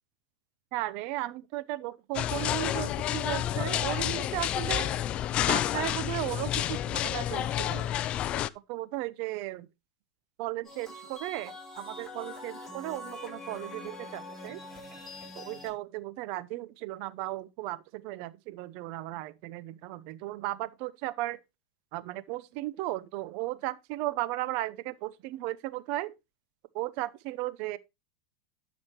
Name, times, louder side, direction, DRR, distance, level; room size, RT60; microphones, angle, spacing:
voice 1, 0.7-5.0 5.5-8.0 8.7-9.7 10.4-14.6 15.4-21.4 21.9-26.1 26.7-27.8, right 17 dB, 55° right, 0.7 m, -35 dB
sound 1, 2.1-8.5, left 12 dB, 40° left, 0.4 m, -29 dB
sound 2, 10.6-15.7, left 1 dB, 10° left, 6.2 m, -44 dB
12.0 x 6.3 x 3.0 m
hypercardioid pair, 110°, 3 cm